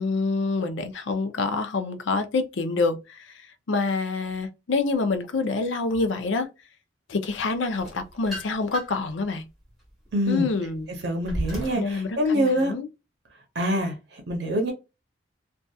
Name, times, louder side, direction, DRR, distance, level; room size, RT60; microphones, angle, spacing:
voice 1, 0.0-3.3 3.7-6.5 7.1-9.4 10.3-10.9 11.7-12.9, left 3 dB, 75° left, 0.5 m, -27 dB
sound 1, 7.7-9.1 9.6-11.9, equal, ahead, 1.0 m, -35 dB
voice 2, 10.1-10.5 11.0-12.7 13.6-13.9 14.3-14.7, equal, 60° right, 0.7 m, -25 dB
2.7 x 2.3 x 2.3 m
head